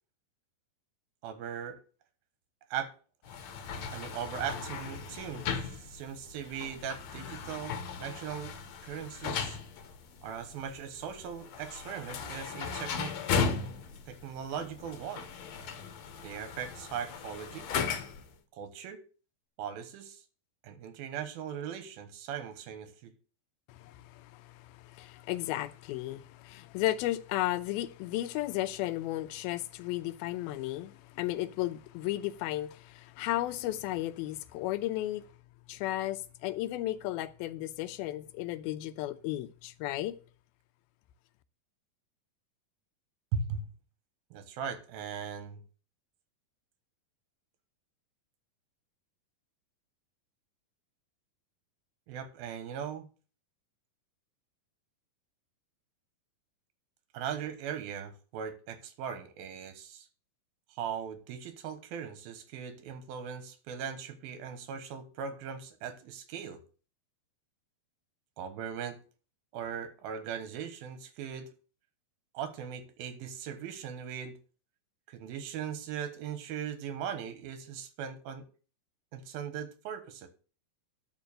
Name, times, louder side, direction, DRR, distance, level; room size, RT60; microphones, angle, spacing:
voice 1, 1.2-1.8 2.7-2.9 3.9-8.6 8.8-9.6 10.2-13.1 14.1-15.3 16.2-17.7 18.5-19.0 19.6-20.2 20.6-23.1 43.3-43.6 44.3-45.6 52.1-53.1 57.1-60.1 60.7-66.6 68.4-69.0 69.5-71.5 72.3-74.4 75.1-78.5 79.1-80.3, right 8 dB, 85° right, 3.1 m, -39 dB
sound 1, 3.3-18.3, left 6 dB, 60° left, 1.9 m, -37 dB
voice 2, 23.7-35.3 35.7-40.2, left 15 dB, 90° left, 2.5 m, -34 dB
11.5 x 4.7 x 6.5 m
omnidirectional pair, 4.2 m